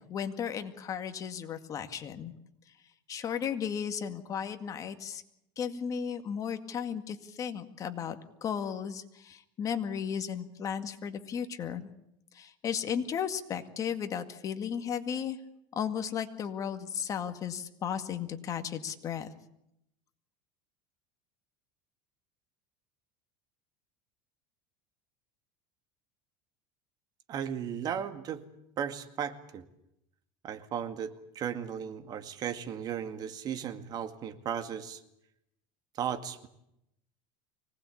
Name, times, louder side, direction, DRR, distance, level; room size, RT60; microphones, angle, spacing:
voice 1, 0.1-2.3 3.1-5.2 5.6-11.9 12.3-15.4 15.7-19.3, left 8 dB, 30° left, 8 dB, 2.1 m, -35 dB
voice 2, 27.3-28.4 28.8-29.6 30.4-35.0 36.0-36.5, right 8 dB, 40° right, 9 dB, 2.1 m, -36 dB
25.0 x 19.0 x 8.6 m, 0.80 s
supercardioid pair, 135°, 11 cm